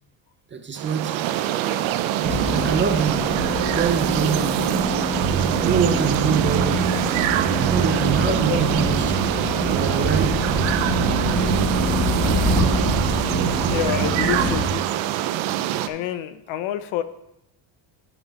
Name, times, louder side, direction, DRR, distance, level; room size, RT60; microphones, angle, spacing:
voice 1, 0.5-1.3 2.2-5.2 5.6-7.0 7.6-9.1 9.7-10.5, right 6 dB, 25° right, 0.6 m, -25 dB
sound 1, 0.8-15.9, right 12 dB, 75° right, 0.7 m, -24 dB
sound 2, 2.2-14.6, left 2 dB, 25° left, 2.0 m, -26 dB
sound 3, 5.2-14.8, right 7 dB, 45° right, 1.3 m, -28 dB
voice 2, 8.2-8.6 13.6-14.9 15.9-17.0, left 11 dB, 75° left, 0.7 m, -28 dB
11.0 x 5.9 x 4.2 m
cardioid pair, 140°, 48 cm